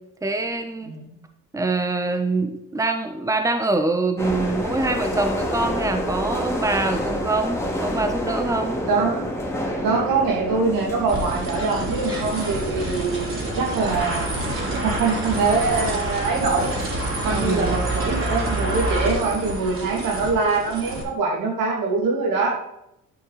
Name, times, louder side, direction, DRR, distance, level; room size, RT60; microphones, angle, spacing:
voice 1, 0.2-0.9 1.5-8.8 17.3-17.8, right 2 dB, 10° right, 6 dB, 1.0 m, -24 dB
sound 1, 4.2-18.6, equal, 10° left, 2.2 m, -30 dB
voice 2, 8.9-9.3 9.8-14.3 14.8-16.7 17.2-22.6, right 4 dB, 85° right, -1 dB, 2.8 m, -23 dB
sound 2, 11.1-21.0, right 1 dB, 40° right, 3.3 m, -27 dB
10.0 x 6.0 x 4.1 m, 0.81 s
cardioid pair, 95°, 33 cm